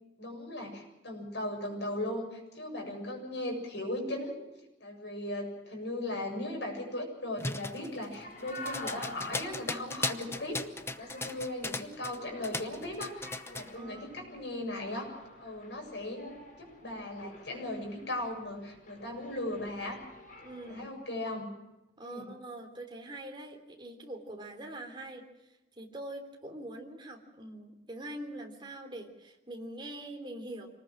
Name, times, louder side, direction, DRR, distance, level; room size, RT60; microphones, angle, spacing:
voice 1, 0.2-4.4 4.8-10.6 11.0-15.1 15.4-20.0 20.7-21.5 22.0-22.3, left 1 dB, 75° left, 2 dB, 7.6 m, -38 dB
sound 1, 7.4-12.2 12.4-13.7, left 2 dB, 15° left, 0.9 m, -37 dB
sound 2, 8.1-20.9, left 1 dB, 50° left, 5.2 m, -49 dB
voice 2, 13.7-14.4 20.4-20.9 22.0-25.2 25.8-30.7, right 1 dB, 25° right, 2 dB, 3.4 m, -43 dB
26.5 x 19.5 x 6.3 m, 0.96 s
head